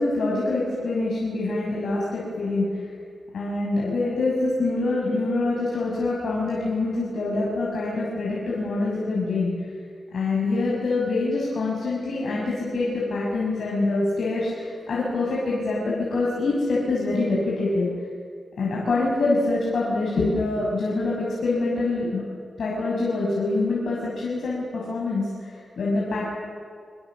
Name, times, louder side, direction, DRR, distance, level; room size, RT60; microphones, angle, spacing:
voice 1, 0.0-2.8 3.3-9.5 10.1-17.9 18.6-22.2 22.6-26.3, left 2 dB, 70° left, -5 dB, 6.6 m, -25 dB
26.0 x 25.0 x 7.5 m, 2.1 s
wide cardioid pair, 95°, 0 cm